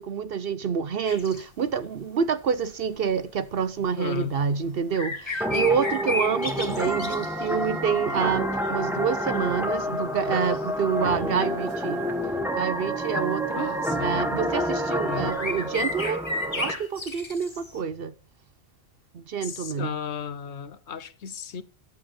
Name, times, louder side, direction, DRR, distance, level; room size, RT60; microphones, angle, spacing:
voice 1, 0.0-12.0 12.6-13.7 14.0-16.3 16.6-18.1 19.1-19.9, right 6 dB, 55° right, 0.8 m, -27 dB
sound 1, 1.1-1.4 3.5-3.6 4.3-4.4 4.9-7.7 8.4-8.8 9.3-9.4 10.3-10.8 11.4-11.7 13.6-13.8 14.9-15.0 15.2-17.8, left 2 dB, 25° left, 1.2 m, -33 dB
voice 2, 3.8-4.4 13.5-14.2 15.1-15.3 19.4-21.6, left 8 dB, 65° left, 1.1 m, -35 dB
sound 2, 5.4-16.7, equal, ahead, 1.6 m, -28 dB
14.5 x 8.1 x 4.2 m
omnidirectional pair, 1.3 m